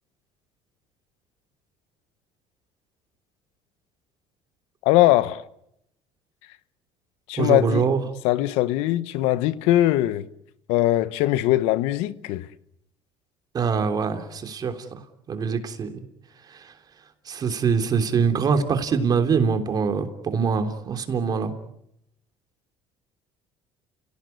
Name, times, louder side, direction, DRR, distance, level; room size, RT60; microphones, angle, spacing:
voice 1, 4.8-5.4 7.3-7.9 8.2-10.3 10.7-12.5, left 15 dB, 80° left, 1.1 m, -21 dB
voice 2, 7.4-8.0 13.5-14.8 15.3-16.0 16.5-16.7 17.2-21.5, right 6 dB, 40° right, 3.4 m, -24 dB
30.0 x 18.0 x 9.5 m
cardioid pair, 105°, 10 cm